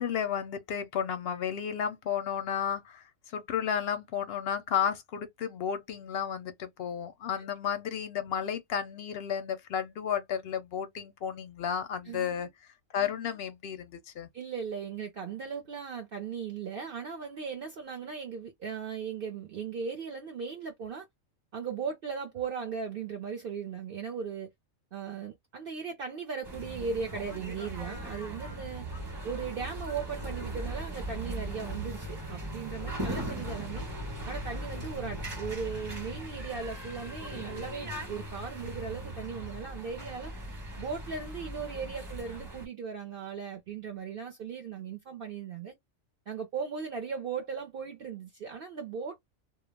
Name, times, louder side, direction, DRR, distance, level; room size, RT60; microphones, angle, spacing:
voice 1, 0.0-12.5 12.9-14.3, left 8 dB, 65° left, 0.7 m, -33 dB
voice 2, 12.1-12.5 14.3-21.1 21.5-24.5 24.9-28.9 29.2-33.8 34.2-40.3 40.8-45.7 46.3-49.2, right 6 dB, 60° right, 0.6 m, -37 dB
sound 1, 26.4-42.7, right 1 dB, 20° right, 0.9 m, -39 dB
2.2 x 2.0 x 3.2 m
omnidirectional pair, 1.3 m